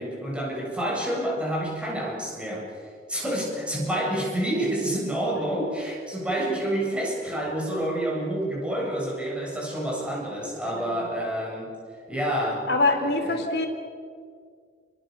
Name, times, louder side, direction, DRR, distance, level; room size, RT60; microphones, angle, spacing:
voice 1, 0.0-2.7 3.1-11.7 12.1-13.4, right 1 dB, 5° right, -3 dB, 7.5 m, -28 dB
voice 2, 10.6-11.0 12.7-13.7, left 2 dB, 65° left, 5 dB, 3.4 m, -25 dB
30.0 x 23.5 x 6.9 m, 2.1 s
head